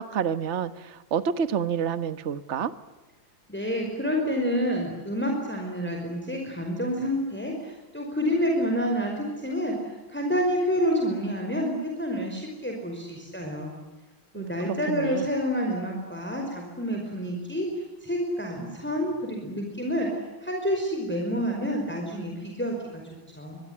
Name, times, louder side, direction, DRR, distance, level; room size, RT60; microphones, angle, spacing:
voice 1, 0.0-2.7 14.3-15.3, right 7 dB, 40° right, 13 dB, 1.4 m, -29 dB
voice 2, 3.5-13.7 14.3-17.7 18.0-23.0 23.4-23.6, equal, 5° left, 1 dB, 5.1 m, -28 dB
26.0 x 22.5 x 9.6 m, 1.2 s
omnidirectional pair, 2.1 m